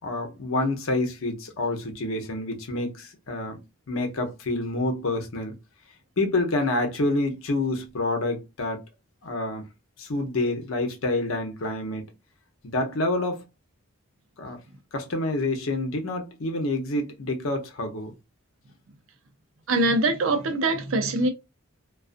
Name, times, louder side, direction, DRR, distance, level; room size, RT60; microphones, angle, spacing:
voice 1, 0.0-3.6 3.9-5.5 6.2-8.8 9.2-9.6 10.0-12.1 12.6-13.5 14.4-14.6 14.9-18.1, left 2 dB, 75° left, 0.7 m, -28 dB
voice 2, 19.7-21.3, right 2 dB, 70° right, 0.6 m, -23 dB
2.4 x 2.3 x 2.4 m
head